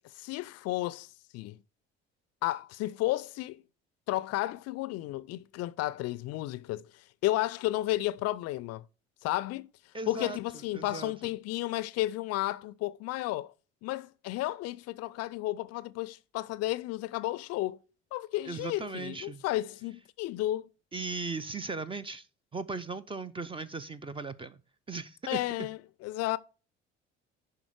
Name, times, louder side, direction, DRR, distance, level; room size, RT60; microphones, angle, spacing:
voice 1, 0.1-1.6 2.4-3.6 4.1-8.8 9.2-9.7 10.1-13.5 13.8-17.8 18.1-20.6 25.3-26.4, left 16 dB, 45° left, 0.5 m, -33 dB
voice 2, 9.9-10.4 10.7-11.1 18.4-19.4 20.9-22.3 22.5-24.6 24.9-25.7, right 4 dB, 15° right, 0.5 m, -37 dB
10.5 x 3.6 x 4.7 m
figure-of-eight pair, 55°, 34 cm